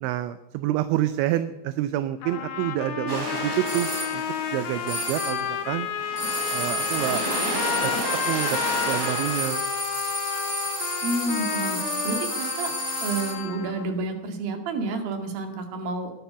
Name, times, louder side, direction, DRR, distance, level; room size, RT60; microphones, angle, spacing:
voice 1, 0.0-4.2 4.5-5.9 6.5-7.2 7.8-7.9 8.3-8.6 8.8-9.7, right 13 dB, 80° right, 12 dB, 2.9 m, -28 dB
sound 1, 2.2-13.9, left 8 dB, 80° left, 5.1 m, -31 dB
sound 2, 3.1-9.5, right 1 dB, 35° right, 5.4 m, -33 dB
sound 3, 3.6-4.2 4.9-5.5 6.2-13.5, equal, 20° right, 5.7 m, -31 dB
voice 2, 11.0-11.8 12.0-12.7 13.0-16.1, right 3 dB, 55° right, 4 dB, 3.6 m, -29 dB
18.0 x 12.0 x 6.9 m, 0.95 s
omnidirectional pair, 5.6 m